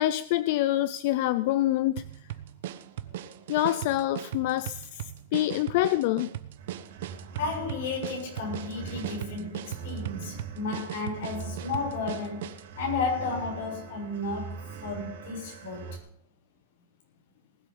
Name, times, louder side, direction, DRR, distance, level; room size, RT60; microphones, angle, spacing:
voice 1, 0.0-2.0 3.5-5.0 5.3-6.3, left 15 dB, 45° left, 0.5 m, -26 dB
sound 1, 2.0-12.7, right 12 dB, 65° right, 1.0 m, -39 dB
sound 2, 6.6-16.0, right 5 dB, 85° right, 4.1 m, -42 dB
voice 2, 7.4-16.0, left 4 dB, 75° left, 6.5 m, -33 dB
19.5 x 8.2 x 5.6 m
supercardioid pair, 180°, 0 cm